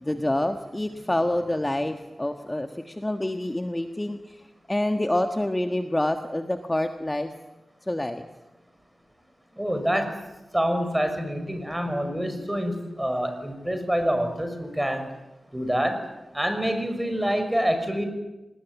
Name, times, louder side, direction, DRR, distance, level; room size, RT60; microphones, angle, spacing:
voice 1, 0.0-4.4 4.7-7.3 7.9-8.3, left 1 dB, 20° left, 7 dB, 1.5 m, -27 dB
voice 2, 9.6-10.1 10.5-15.0 15.5-16.0 16.3-18.1, equal, 10° right, 7 dB, 6.0 m, -26 dB
26.0 x 20.0 x 9.4 m, 0.99 s
cardioid pair, 65°, 0 cm